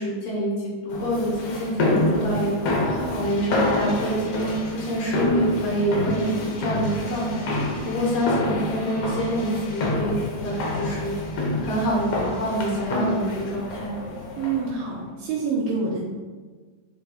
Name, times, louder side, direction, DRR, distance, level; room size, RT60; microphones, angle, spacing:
voice 1, 0.0-11.1 11.6-14.0, right 1 dB, 90° left, -6 dB, 3.6 m, -27 dB
sound 1, 0.9-14.8, left 2 dB, 65° left, 2.2 m, -27 dB
voice 2, 14.4-16.0, right 4 dB, 80° right, -7 dB, 2.6 m, -26 dB
9.5 x 4.9 x 2.4 m, 1.4 s
omnidirectional pair, 3.9 m